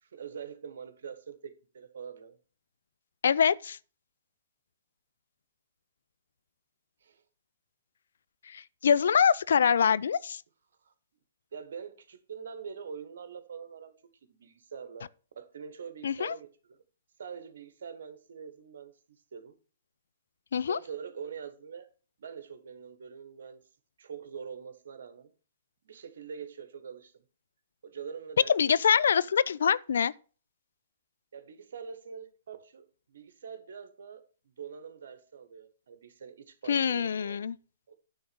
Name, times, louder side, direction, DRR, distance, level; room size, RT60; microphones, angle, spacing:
voice 1, 0.0-2.4 7.0-7.2 10.8-10.9 11.5-13.9 14.3-15.1 15.3-16.8 17.2-18.9 19.3-19.5 20.6-21.9 22.2-23.6 24.0-25.3 25.8-27.2 27.8-28.8 31.3-37.4 37.9-38.0, right 7 dB, 70° right, 1.3 m, -44 dB
voice 2, 3.2-3.8 8.5-10.4 16.0-16.3 20.5-20.8 28.5-30.1 36.7-37.6, left 7 dB, 75° left, 0.4 m, -24 dB
9.6 x 3.8 x 6.9 m
hypercardioid pair, 145°, 0 cm